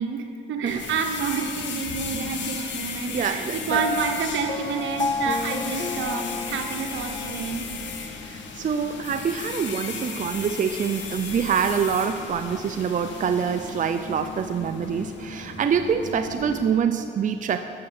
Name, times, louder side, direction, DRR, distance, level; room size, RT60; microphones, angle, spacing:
voice 1, 0.0-7.7, right 6 dB, 75° right, 5 dB, 1.2 m, -29 dB
sound 1, 0.7-16.7, left 5 dB, 70° left, 1.5 m, -35 dB
voice 2, 3.1-3.8 8.3-17.6, right 7 dB, 40° right, 8 dB, 0.5 m, -25 dB
Piano, 3.7-7.6, left 4 dB, 25° left, 0.5 m, -31 dB
13.0 x 7.0 x 7.0 m, 2.4 s
cardioid pair, 90°, 20 cm